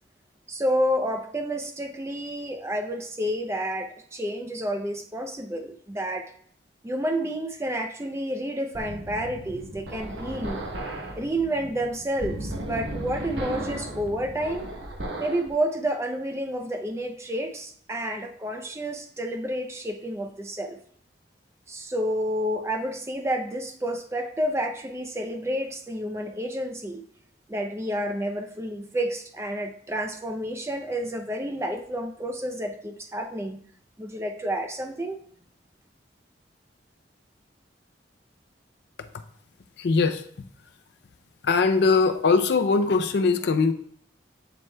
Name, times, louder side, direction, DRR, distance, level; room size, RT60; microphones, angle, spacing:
voice 1, 0.5-6.3 6.8-10.6 11.2-14.7 15.2-20.8 21.7-27.0 27.5-33.6 34.0-35.2, equal, 15° right, 5 dB, 0.5 m, -30 dB
sound 1, 8.7-15.5, right 1 dB, 85° right, 1.2 m, -35 dB
voice 2, 39.8-40.2 41.4-43.7, left 4 dB, 65° left, 8 dB, 0.5 m, -21 dB
7.8 x 7.5 x 2.2 m, 0.62 s
head